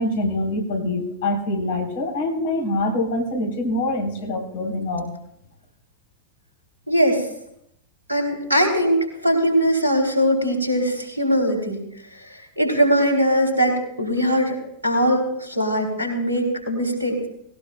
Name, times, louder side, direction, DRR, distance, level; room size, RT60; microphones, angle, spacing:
voice 1, 0.0-5.1, left 1 dB, 55° left, 2 dB, 3.6 m, -25 dB
voice 2, 6.9-7.3 8.1-11.8 12.1-14.6 14.8-17.3, equal, 80° right, 2 dB, 3.5 m, -21 dB
19.0 x 18.0 x 2.3 m, 0.76 s
figure-of-eight pair, 90°, 0 cm